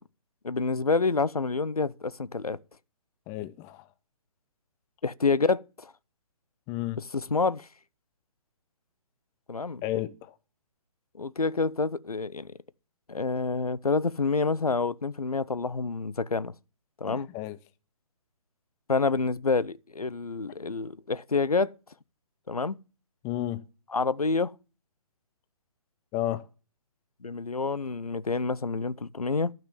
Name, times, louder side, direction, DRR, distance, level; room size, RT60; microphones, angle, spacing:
voice 1, 0.4-2.6 5.0-5.9 7.0-7.7 9.5-9.8 11.2-12.5 13.1-16.5 17.0-17.3 18.9-21.7 22.5-22.7 23.9-24.5 27.2-29.5, left 4 dB, 85° left, 0.7 m, -28 dB
voice 2, 3.3-3.9 6.7-7.0 9.8-10.3 17.0-17.6 23.2-23.6 26.1-26.4, left 14 dB, 15° left, 0.6 m, -32 dB
12.0 x 5.9 x 6.9 m
figure-of-eight pair, 135°, 18 cm